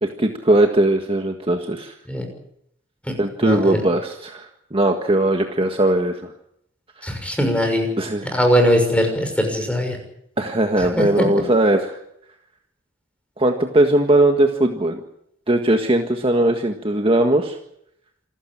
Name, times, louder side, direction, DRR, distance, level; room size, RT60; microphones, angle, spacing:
voice 1, 0.0-1.9 3.2-6.3 8.0-8.3 10.4-12.0 13.4-15.0 15.5-17.6, right 1 dB, 30° right, 4 dB, 1.7 m, -19 dB
voice 2, 3.4-3.8 7.0-7.9 8.3-10.0 10.8-11.3, equal, 5° left, 5 dB, 6.3 m, -20 dB
27.5 x 14.5 x 8.9 m, 0.76 s
head